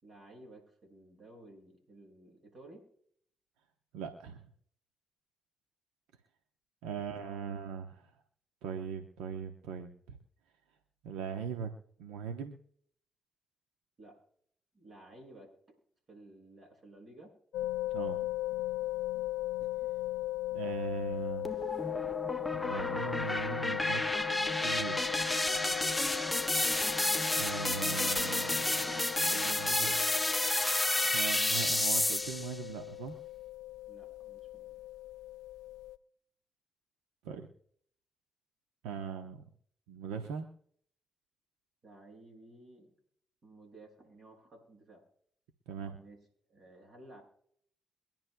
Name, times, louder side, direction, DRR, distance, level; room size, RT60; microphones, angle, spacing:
voice 1, 0.0-2.8 6.8-7.4 14.0-14.2 14.7-15.5 16.1-17.3 33.9-34.7 41.8-43.0 43.4-45.0 45.8-46.2 46.5-47.2, right 1 dB, 50° right, 0 dB, 6.6 m, -55 dB
voice 2, 3.9-4.4 6.8-8.1 8.6-10.2 11.0-11.7 12.0-12.6 17.9-18.2 20.5-21.7 22.5-24.0 24.6-25.0 27.4-30.1 31.0-33.2 37.2-37.5 38.8-39.4 39.9-40.5 45.7-46.0, right 7 dB, 85° right, 4 dB, 0.9 m, -40 dB
sound 1, 17.5-36.0, left 17 dB, 80° left, 0.4 m, -39 dB
sound 2, 21.4-32.6, left 2 dB, 15° left, 0.6 m, -31 dB
24.0 x 10.5 x 2.3 m, 0.66 s
hypercardioid pair, 45°, 0 cm